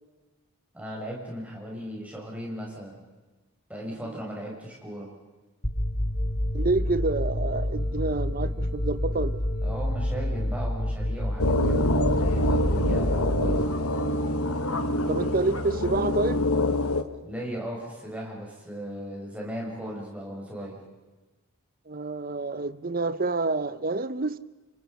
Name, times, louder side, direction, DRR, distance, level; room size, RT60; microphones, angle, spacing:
voice 1, 0.7-3.0 3.7-5.1 9.6-13.7 17.2-20.8, equal, 5° right, 6.6 m, -37 dB
sound 1, 5.6-14.6, left 1 dB, 30° left, 2.4 m, -29 dB
voice 2, 6.5-9.4 14.6-16.4 21.9-24.4, right 3 dB, 40° right, 0.8 m, -28 dB
sound 2, 11.4-17.0, left 1 dB, 75° left, 1.4 m, -25 dB
29.0 x 25.5 x 5.5 m
head